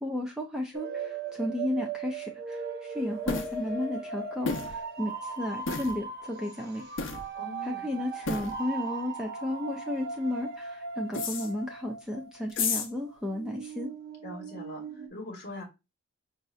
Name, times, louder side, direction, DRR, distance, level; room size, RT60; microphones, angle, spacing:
voice 1, 0.0-6.8 7.6-13.9, left 1 dB, 5° right, 1 dB, 0.4 m, -34 dB
sound 1, 0.7-12.6 12.9-15.1, right 4 dB, 45° right, 0.7 m, -38 dB
sound 2, 3.3-3.5 4.5-4.8 5.7-6.0 7.0-7.2 8.3-8.6 11.1-11.5 12.5-12.9, left 4 dB, 65° left, 0.7 m, -31 dB
voice 2, 7.3-7.9 14.2-15.6, left 2 dB, 45° left, -1 dB, 1.1 m, -42 dB
5.2 x 2.7 x 2.3 m, 0.23 s
head